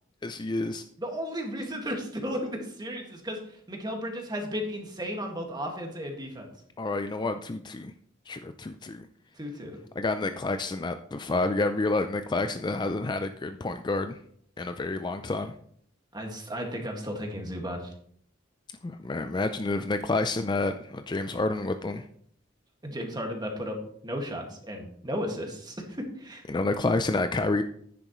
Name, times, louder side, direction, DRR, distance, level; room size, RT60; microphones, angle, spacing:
voice 1, 0.2-0.8 6.8-7.9 8.3-9.1 10.0-14.2 14.6-15.5 18.8-22.0 26.5-27.6, left 2 dB, 25° left, 8 dB, 0.4 m, -29 dB
voice 2, 1.0-3.4 3.7-6.5 9.4-9.8 16.1-17.9 22.8-23.8 24.0-26.4, equal, 20° right, 2 dB, 1.9 m, -34 dB
10.5 x 10.0 x 3.1 m, 0.63 s
head